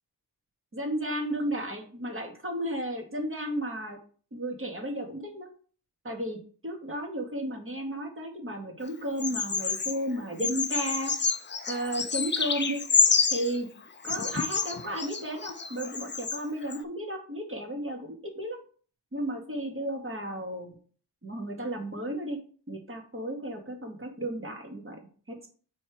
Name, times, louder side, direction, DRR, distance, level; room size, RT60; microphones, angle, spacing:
voice 1, 0.7-4.0 4.3-5.5 6.0-11.1 11.7-12.8 13.3-13.7 14.0-18.6 19.1-20.7 21.2-22.4 22.7-25.0 25.3-25.5, right 1 dB, 30° right, 2 dB, 1.8 m, -33 dB
Bird vocalization bird call bird song, 9.2-10.0 10.4-13.6 14.0-16.4 16.7-16.8, left 5 dB, 25° left, 0.6 m, -28 dB
7.0 x 3.2 x 4.8 m, 0.44 s
cardioid pair, 85°, 43 cm